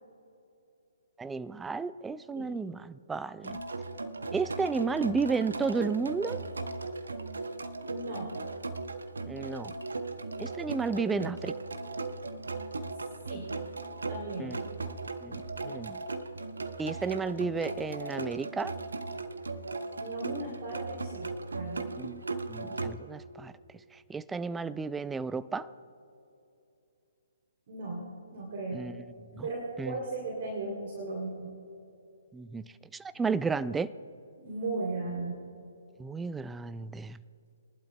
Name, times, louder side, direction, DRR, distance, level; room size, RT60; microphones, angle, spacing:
voice 1, 1.2-3.6 4.3-6.4 9.3-9.7 10.4-11.5 14.4-14.6 15.2-16.0 16.8-18.7 22.0-22.2 22.5-23.5 24.1-25.7 28.7-28.9 29.4-29.5 29.8-30.0 32.3-32.7 32.9-33.9 36.0-37.2, right 4 dB, 10° right, 15 dB, 0.4 m, -32 dB
sound 1, 3.4-22.9, right 3 dB, 75° right, 0.9 m, -37 dB
voice 2, 7.9-8.3 13.2-13.5 14.1-14.5 20.0-21.8 27.7-28.9 29.4-31.5 34.4-35.4, right 2 dB, 50° right, -1 dB, 2.8 m, -36 dB
23.0 x 11.5 x 2.2 m, 2.7 s
figure-of-eight pair, 130°, 0 cm